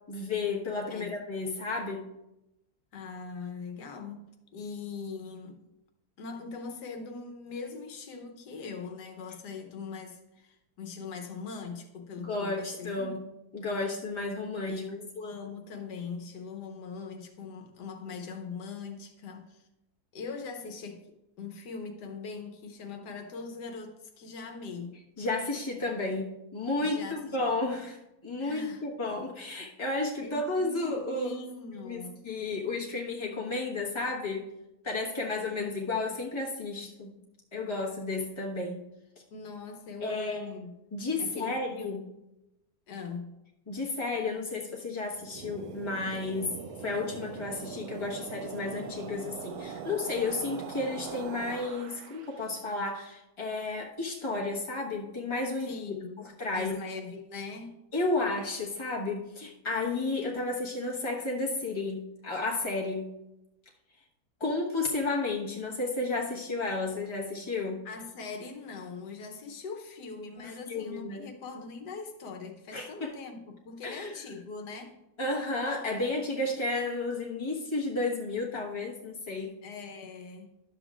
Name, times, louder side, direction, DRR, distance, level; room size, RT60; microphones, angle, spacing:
voice 1, 0.1-2.1 12.2-13.2 13.5-14.8 25.2-31.4 31.8-34.5 34.8-37.2 37.5-38.8 40.0-40.4 40.9-42.0 43.7-55.8 56.4-56.8 57.9-63.1 64.4-67.8 70.4-71.3 72.7-73.1 73.8-74.2 75.2-79.6, left 3 dB, 20° left, 1.2 m, -32 dB
voice 2, 2.9-4.2 4.5-5.6 6.2-13.1 14.7-19.7 20.1-21.0 21.4-25.0 26.8-27.5 28.4-28.8 30.2-32.2 39.3-40.7 41.2-42.0 42.9-43.3 55.6-57.8 67.8-75.0 79.6-80.5, left 4 dB, 90° left, 1.5 m, -41 dB
sound 1, 45.1-52.4, right 6 dB, 70° right, 1.2 m, -42 dB
11.5 x 7.1 x 2.4 m
omnidirectional pair, 1.7 m